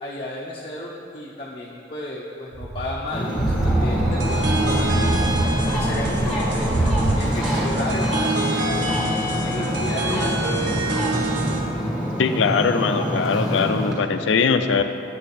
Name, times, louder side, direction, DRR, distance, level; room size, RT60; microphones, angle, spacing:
voice 1, 0.0-3.3 3.6-5.2 5.7-10.3, left 2 dB, 30° left, -5 dB, 0.7 m, -33 dB
sound 1, 2.5-7.2, right 2 dB, 35° right, 0.4 m, -25 dB
Ocean, 3.1-13.9, equal, ahead, 1.5 m, -25 dB
sound 2, 4.2-11.6, right 2 dB, 70° right, 0.9 m, -27 dB
voice 2, 12.2-14.8, left 5 dB, 75° left, 9 dB, 0.4 m, -21 dB
8.1 x 7.3 x 4.2 m, 2.6 s
head